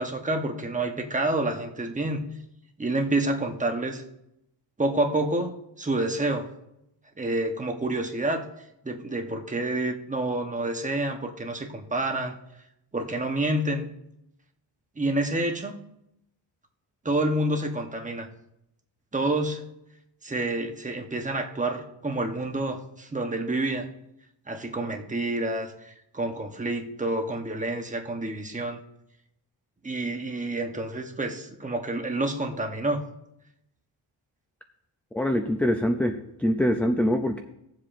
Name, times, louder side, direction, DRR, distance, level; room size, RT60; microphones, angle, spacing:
voice 1, 0.0-2.2 2.8-4.0 4.8-6.5 7.2-8.5 8.8-12.4 12.9-13.9 15.0-15.8 17.0-18.3 19.1-19.6 20.2-23.9 24.5-28.8 29.8-33.0, right 2 dB, 15° right, 4 dB, 0.9 m, -28 dB
voice 2, 35.1-37.4, equal, 5° left, 5 dB, 0.4 m, -24 dB
19.0 x 7.5 x 2.5 m, 0.83 s
wide cardioid pair, 140°, 49 cm